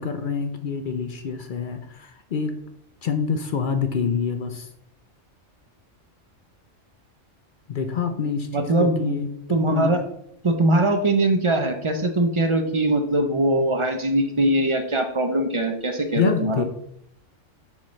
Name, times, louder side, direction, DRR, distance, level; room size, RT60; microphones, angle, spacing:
voice 1, 0.0-2.5 3.0-4.7 7.7-10.0 16.1-16.6, left 6 dB, 55° left, 8 dB, 0.6 m, -26 dB
voice 2, 8.5-9.1 9.5-10.0 10.4-16.6, right 1 dB, 40° right, 6 dB, 0.4 m, -21 dB
7.0 x 5.5 x 3.1 m, 0.74 s
omnidirectional pair, 1.3 m